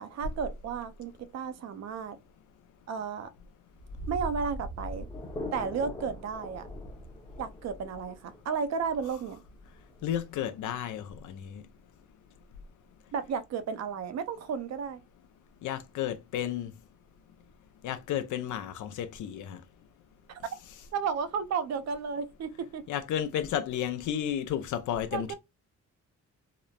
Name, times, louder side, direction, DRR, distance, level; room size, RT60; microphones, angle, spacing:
voice 1, 0.0-2.2 2.9-3.3 4.1-5.1 5.5-6.7 7.4-9.4 13.1-15.0 20.3-20.4 20.9-22.8 25.1-25.3, right 6 dB, 60° right, 0.5 m, -33 dB
sound 1, 3.7-10.6, left 1 dB, 15° left, 0.7 m, -41 dB
voice 2, 10.0-11.6 15.6-16.7 17.8-19.6 22.9-25.3, left 10 dB, 85° left, 0.5 m, -32 dB
2.9 x 2.0 x 2.3 m
cardioid pair, 105°, 30 cm